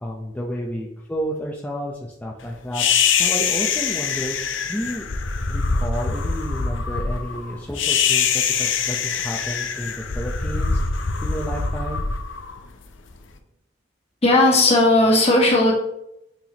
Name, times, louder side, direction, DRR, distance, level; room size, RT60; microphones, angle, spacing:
voice 1, 0.0-5.1 5.5-12.0, equal, 10° left, -3 dB, 0.6 m, -31 dB
sound 1, 2.7-13.1, left 6 dB, 85° left, 0.7 m, -24 dB
voice 2, 14.2-15.7, left 2 dB, 35° left, -1 dB, 1.5 m, -16 dB
8.9 x 4.5 x 3.0 m, 0.84 s
head